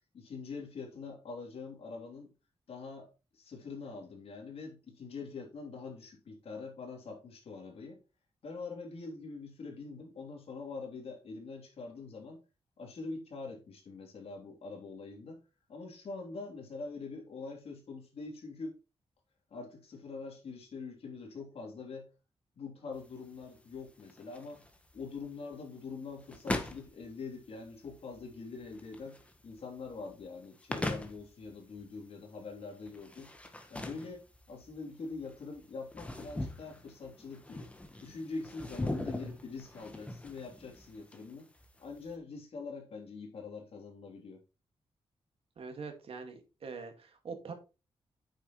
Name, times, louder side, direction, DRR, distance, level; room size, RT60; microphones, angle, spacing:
voice 1, 0.1-2.3 2.7-3.1 3.3-8.0 8.4-12.4 12.8-15.4 15.7-18.8 19.5-22.1 22.5-24.6 24.9-33.3 33.7-37.7 38.0-41.5 41.8-44.4, left 4 dB, 70° left, 3.3 m, -44 dB
sound 1, 22.9-42.1, left 1 dB, 10° left, 1.3 m, -42 dB
voice 2, 45.6-47.6, right 4 dB, 65° right, 2.0 m, -43 dB
9.1 x 6.9 x 3.1 m
wide cardioid pair, 130°, 10 cm